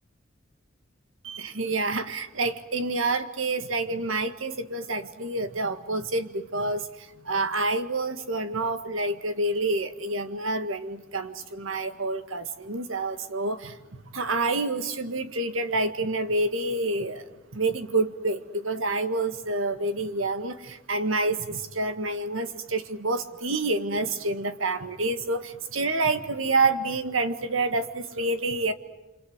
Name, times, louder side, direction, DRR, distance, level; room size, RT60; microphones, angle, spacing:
voice 1, 1.2-6.9 7.3-13.8 14.1-17.3 17.5-28.7, right 2 dB, 85° right, 9 dB, 1.8 m, -28 dB
27.5 x 26.0 x 8.1 m, 1.1 s
head